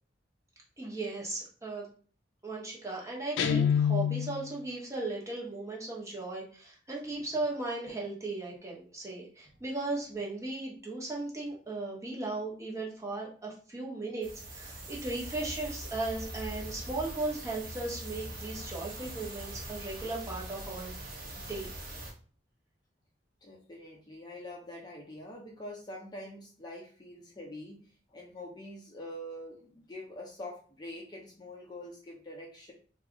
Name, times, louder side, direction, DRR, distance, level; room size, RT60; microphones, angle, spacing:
voice 1, 0.8-1.9 2.4-20.9 21.5-21.7, right 2 dB, 15° right, -3 dB, 0.9 m, -37 dB
Guitar, 3.4-4.5, left 8 dB, 80° left, 0.3 m, -26 dB
sound 1, 14.2-22.1, right 1 dB, 50° right, 1.0 m, -42 dB
voice 2, 23.4-27.8 28.1-32.7, left 1 dB, 20° left, -2 dB, 0.6 m, -45 dB
2.7 x 2.3 x 3.6 m, 0.42 s
head